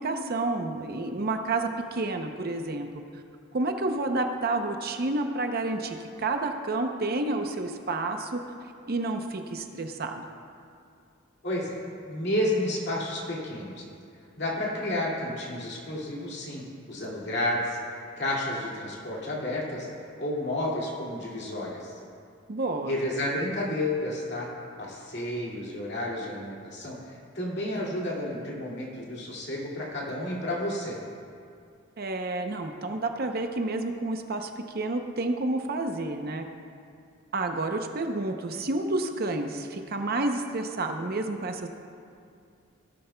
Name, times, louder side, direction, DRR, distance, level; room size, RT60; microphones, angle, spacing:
voice 1, 0.0-2.9 3.5-8.4 8.9-10.3 22.5-23.0 32.0-36.5 37.3-41.7, right 2 dB, 45° right, 5 dB, 0.6 m, -30 dB
voice 2, 11.4-11.8 12.1-13.8 14.4-17.8 18.1-19.9 20.2-22.0 22.9-24.5 24.8-31.0, left 1 dB, 55° left, -4 dB, 2.2 m, -31 dB
17.5 x 10.5 x 2.2 m, 2.4 s
head